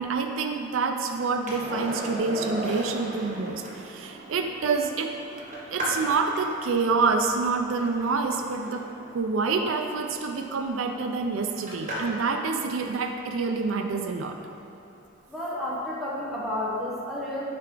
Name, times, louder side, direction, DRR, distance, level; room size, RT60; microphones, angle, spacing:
voice 1, 0.0-5.1 5.7-8.9 9.1-14.4, right 4 dB, 70° right, 4 dB, 0.4 m, -27 dB
Skateboard, 1.5-12.3 14.9-15.0, equal, 35° right, 1.0 m, -37 dB
voice 2, 15.3-17.4, left 1 dB, ahead, -7 dB, 1.0 m, -31 dB
6.6 x 4.5 x 3.8 m, 2.7 s
head